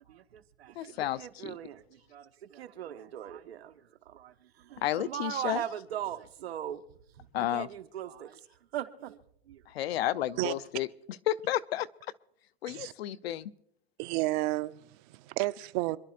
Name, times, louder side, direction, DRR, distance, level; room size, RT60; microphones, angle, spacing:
voice 1, 0.0-8.4 8.7-9.2 9.5-9.6 10.0-10.1, right 11 dB, 85° right, 1.3 m, -40 dB
voice 2, 0.8-1.6 4.8-5.6 7.3-7.7 9.7-10.9 11.3-11.9 12.6-13.5, left 13 dB, 80° left, 0.7 m, -31 dB
voice 3, 14.0-16.0, right 19 dB, 50° right, 0.8 m, -31 dB
27.0 x 11.5 x 2.5 m
hypercardioid pair, 125°, 31 cm